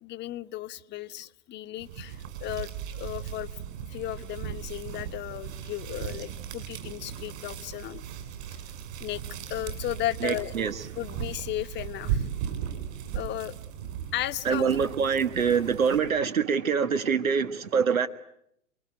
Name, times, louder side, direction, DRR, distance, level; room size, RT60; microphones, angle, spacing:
voice 1, 0.0-3.5 3.9-8.0 9.0-9.2 9.5-10.5 11.0-12.2 13.1-13.6 14.1-14.7, left 14 dB, 25° left, 1.2 m, -35 dB
sound 1, 1.8-16.2, right 9 dB, 55° right, 7.2 m, -37 dB
voice 2, 10.2-10.9 14.4-18.1, right 6 dB, 85° right, 1.7 m, -25 dB
29.5 x 21.0 x 9.0 m
hypercardioid pair, 115°, 40 cm